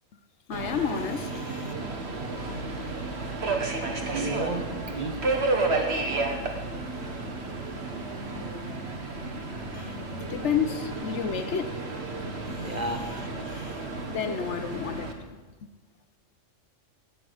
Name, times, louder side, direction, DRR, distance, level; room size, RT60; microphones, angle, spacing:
voice 1, 0.5-1.7 9.7-10.0 10.3-11.8 12.6-12.8 13.5-13.8 14.1-15.4, left 7 dB, 65° left, 1.1 m, -31 dB
Subway metro underground, 0.5-15.1, right 3 dB, 60° right, 1.8 m, -32 dB
voice 2, 4.1-5.2 12.6-13.1, right 1 dB, 35° right, 1.2 m, -32 dB
13.0 x 8.3 x 9.5 m
omnidirectional pair, 1.3 m